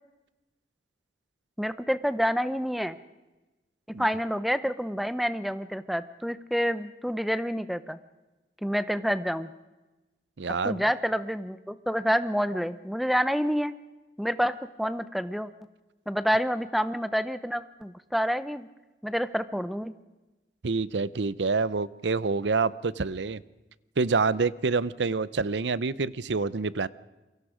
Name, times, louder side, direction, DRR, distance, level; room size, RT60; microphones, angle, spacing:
voice 1, 1.6-3.0 4.0-8.0 8.6-9.5 10.6-13.7 14.2-15.5 16.1-18.7 19.0-20.0, equal, ahead, 13 dB, 0.7 m, -28 dB
voice 2, 10.4-10.8 20.6-23.4 24.0-26.9, right 4 dB, 80° right, 18 dB, 0.7 m, -27 dB
28.0 x 23.5 x 5.1 m, 1.1 s
head